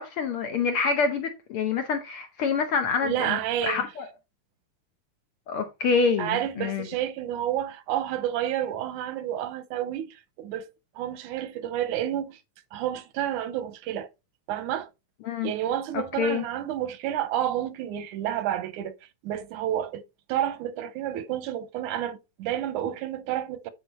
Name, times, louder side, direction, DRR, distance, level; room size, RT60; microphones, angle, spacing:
voice 1, 0.0-4.1 5.5-6.9 15.2-15.5 15.9-16.4, left 5 dB, 65° left, 1.4 m, -27 dB
voice 2, 3.0-3.8 6.2-10.7 11.0-12.4 12.7-14.1 14.5-14.9 15.4-18.9 19.2-20.0 20.3-23.7, right 11 dB, 90° right, 2.3 m, -30 dB
9.5 x 4.4 x 4.3 m
omnidirectional pair, 3.5 m